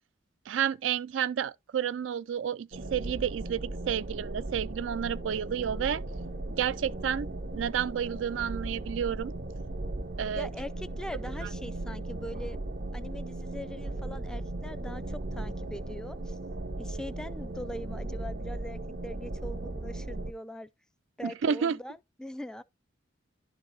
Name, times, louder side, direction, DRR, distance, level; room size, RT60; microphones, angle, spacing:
voice 1, 0.5-6.0 6.5-7.3 7.5-9.3 10.2-10.5 11.4-11.5 21.2-21.8, right 8 dB, 80° right, 0.4 m, -31 dB
sound 1, 2.7-20.3, right 2 dB, 45° right, 0.7 m, -37 dB
voice 2, 10.4-12.6 12.9-16.4 16.8-20.7 21.2-22.6, left 1 dB, 5° left, 0.4 m, -42 dB
11.5 x 4.1 x 3.9 m
head